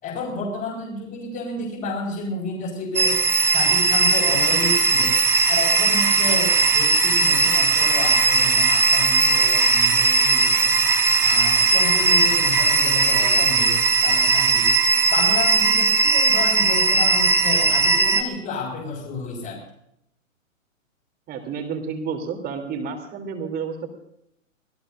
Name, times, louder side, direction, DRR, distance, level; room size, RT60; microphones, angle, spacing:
voice 1, 0.0-3.2 3.4-5.2 5.5-10.8 11.2-14.7 15.1-19.6, left 3 dB, 25° left, -5 dB, 5.2 m, -30 dB
sound 1, 3.0-18.2, right 4 dB, 5° right, 0.5 m, -18 dB
voice 2, 21.3-23.9, right 6 dB, 25° right, 4 dB, 3.2 m, -30 dB
25.5 x 17.0 x 2.6 m, 0.75 s
hypercardioid pair, 125°, 40 cm